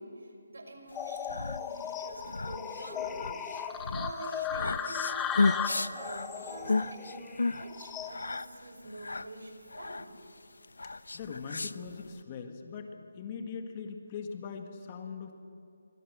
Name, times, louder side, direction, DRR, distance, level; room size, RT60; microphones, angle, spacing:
voice 1, 0.0-3.4 3.9-10.1, right 2 dB, 75° right, 4 dB, 6.0 m, -46 dB
sound 1, 0.9-8.4, left 7 dB, 10° left, 0.9 m, -37 dB
sound 2, 1.0-12.2, left 3 dB, 80° left, 0.8 m, -34 dB
voice 2, 11.1-12.9 13.2-15.3, left 5 dB, 25° left, 5 dB, 1.8 m, -41 dB
27.0 x 24.5 x 6.3 m, 2.5 s
figure-of-eight pair, 165°, 0 cm